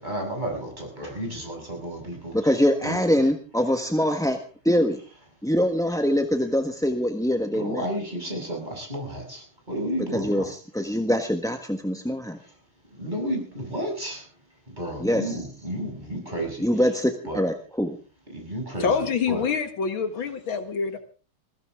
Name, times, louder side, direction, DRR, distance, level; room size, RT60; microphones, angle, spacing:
voice 1, 0.0-2.5 2.8-3.2 7.5-10.5 12.4-12.6 12.9-14.3 14.7-16.8 17.2-17.4 18.3-19.5, right 1 dB, 20° right, 1 dB, 6.8 m, -32 dB
voice 2, 2.3-4.4 4.6-5.0 5.4-7.9 10.1-12.4 15.0-15.3 16.6-18.0, equal, ahead, 4 dB, 0.9 m, -24 dB
voice 3, 18.8-21.0, left 6 dB, 70° left, 8 dB, 2.3 m, -26 dB
21.5 x 16.0 x 3.7 m, 0.38 s
omnidirectional pair, 2.3 m